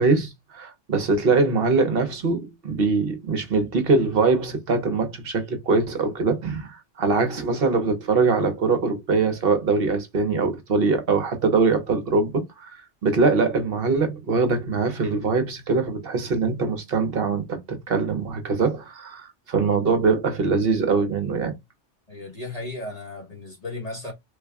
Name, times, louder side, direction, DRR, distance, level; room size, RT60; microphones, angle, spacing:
voice 1, 0.0-21.5, right 4 dB, 55° right, 1.0 m, -23 dB
voice 2, 22.1-24.1, left 2 dB, 35° left, 1.1 m, -35 dB
3.4 x 2.3 x 3.4 m
omnidirectional pair, 1.2 m